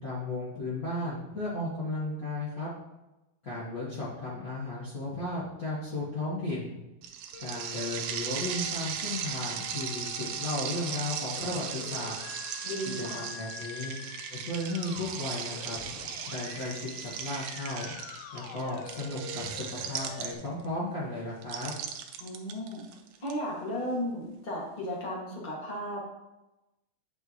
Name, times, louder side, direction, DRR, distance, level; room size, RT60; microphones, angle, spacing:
voice 1, 0.0-2.7 3.4-6.8 7.4-12.1 12.9-13.9 14.3-15.8 16.3-17.9 18.3-21.7, left 2 dB, 65° left, -8 dB, 0.8 m, -35 dB
sound 1, 7.0-20.7 21.4-23.3, right 8 dB, 90° right, 2.5 m, -37 dB
Musical instrument, 7.3-20.3, left 7 dB, 90° left, 2.7 m, -46 dB
voice 2, 12.6-13.3 22.2-22.8 23.2-26.1, equal, 30° left, -4 dB, 0.9 m, -35 dB
9.0 x 6.7 x 3.0 m, 0.98 s
omnidirectional pair, 4.2 m